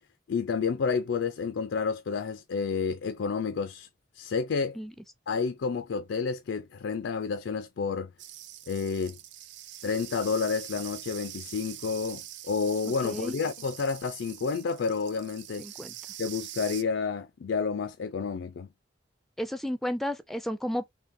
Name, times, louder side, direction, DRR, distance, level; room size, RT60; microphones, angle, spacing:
voice 1, 0.3-3.9 4.1-4.8 5.3-8.1 8.7-9.2 9.8-15.7 16.2-18.7, left 5 dB, 85° left, 0.4 m, -30 dB
sound 1, 8.2-16.8, right 12 dB, 85° right, 0.6 m, -44 dB
voice 2, 13.0-13.3 15.6-15.9 19.4-20.9, equal, ahead, 0.4 m, -32 dB
3.6 x 3.2 x 2.6 m
head